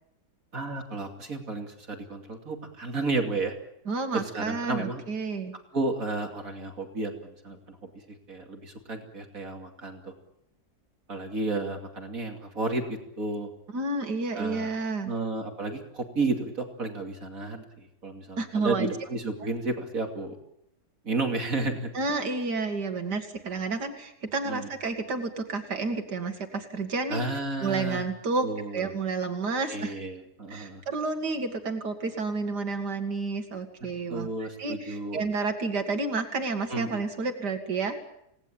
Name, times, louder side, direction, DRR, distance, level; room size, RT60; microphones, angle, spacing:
voice 1, 0.5-3.5 4.1-5.0 5.7-10.1 11.1-13.5 14.3-14.7 15.0-20.4 21.0-21.9 24.4-24.7 27.1-28.1 28.4-28.9 29.7-30.8 34.1-35.2 36.7-37.0, right 3 dB, 55° right, 4 dB, 3.1 m, -32 dB
voice 2, 3.9-5.5 13.7-15.1 18.4-18.9 21.9-27.2 27.6-28.5 28.7-30.0 30.5-38.0, right 3 dB, 90° right, 5 dB, 2.8 m, -30 dB
28.5 x 18.5 x 8.8 m, 0.80 s
omnidirectional pair, 1.7 m